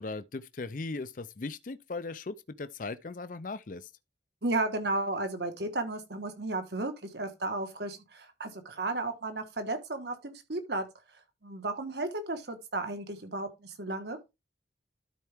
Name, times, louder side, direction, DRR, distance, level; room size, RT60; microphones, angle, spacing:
voice 1, 0.0-3.9, left 3 dB, 45° left, 0.5 m, -38 dB
voice 2, 4.4-10.8 11.4-14.2, right 2 dB, 65° right, 1.5 m, -34 dB
12.0 x 4.5 x 3.5 m
head